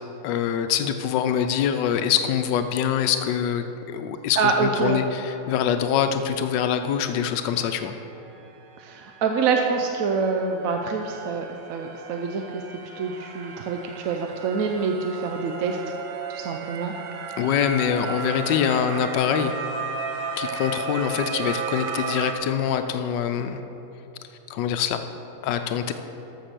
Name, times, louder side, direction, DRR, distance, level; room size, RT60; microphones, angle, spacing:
voice 1, 0.2-3.6 3.9-7.9 17.4-19.5 20.4-23.6 24.5-25.0 25.4-25.9, left 8 dB, 85° left, 8 dB, 1.3 m, -24 dB
voice 2, 4.4-5.0 8.8-12.6 13.0-15.9 16.3-16.9, right 5 dB, 65° right, 3 dB, 0.9 m, -26 dB
sound 1, 7.8-7.9 8.2-22.3, right 5 dB, 80° right, 1.6 m, -35 dB
13.0 x 6.1 x 6.7 m, 3.0 s
omnidirectional pair, 1.9 m